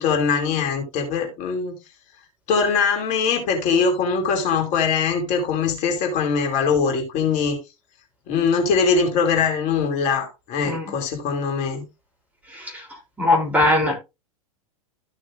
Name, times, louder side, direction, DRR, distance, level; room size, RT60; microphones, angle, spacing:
voice 1, 0.0-1.7 2.5-7.6 8.3-11.8, left 5 dB, 40° left, 2.7 m, -22 dB
voice 2, 13.2-13.9, left 2 dB, 10° right, 3.3 m, -19 dB
14.0 x 6.1 x 2.5 m
figure-of-eight pair, 90°, 18 cm